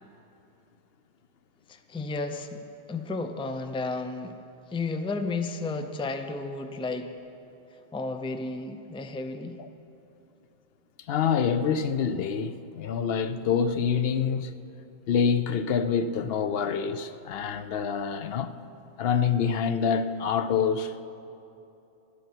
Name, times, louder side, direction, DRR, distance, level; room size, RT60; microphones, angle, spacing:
voice 1, 1.7-4.4 4.7-7.1 7.9-9.6, left 3 dB, 5° left, 0.4 m, -33 dB
voice 2, 11.1-14.5 15.1-18.5 19.0-21.0, left 7 dB, 75° left, 0.8 m, -26 dB
11.5 x 8.5 x 9.8 m
omnidirectional pair, 1.0 m